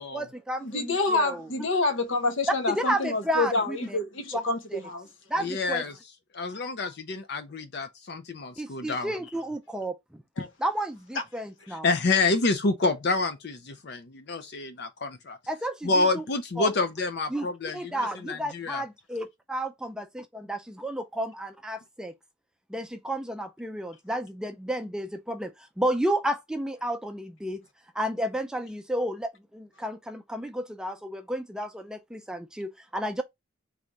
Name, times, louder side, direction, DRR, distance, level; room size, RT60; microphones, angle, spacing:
voice 1, 0.0-1.7 2.7-4.0 4.3-4.4 4.7-4.8 5.3-5.8 8.6-9.9 10.6-11.9 15.5-16.2 16.6-16.7 17.3-17.5 17.7-22.1 22.7-27.6 27.9-33.2, right 1 dB, 5° right, 0.4 m, -32 dB
voice 2, 0.6-5.1 10.4-10.5, left 3 dB, 70° left, 0.9 m, -27 dB
voice 3, 5.4-5.9 6.3-9.1 11.7-15.4 15.8-17.8 18.3-18.8, left 3 dB, 55° left, 0.5 m, -28 dB
3.5 x 3.3 x 3.9 m
head